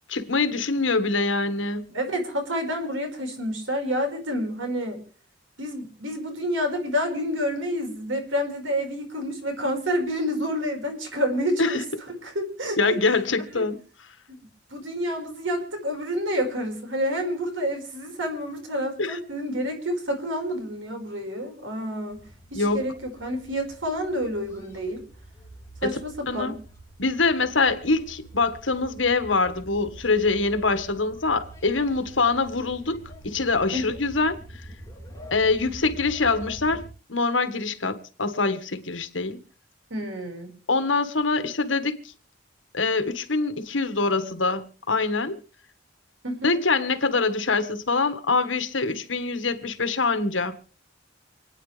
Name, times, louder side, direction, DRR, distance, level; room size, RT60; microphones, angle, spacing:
voice 1, 0.1-1.8 11.6-11.7 12.8-13.8 19.0-19.2 22.5-22.8 25.8-26.0 26.3-26.5 27.0-34.3 35.3-36.8 37.1-39.4 40.7-42.0 42.7-45.4 46.4-50.5, left 3 dB, 80° left, 1.7 m, -24 dB
voice 2, 1.9-5.0 5.6-11.8 12.2-12.8 13.5-13.6 14.3-14.4 14.7-25.0 25.8-26.6 33.7-33.9 39.9-40.5 46.2-46.5, equal, 85° right, 5.2 m, -29 dB
sound 1, 22.1-36.9, right 1 dB, 15° left, 3.0 m, -45 dB
28.5 x 9.7 x 3.4 m
head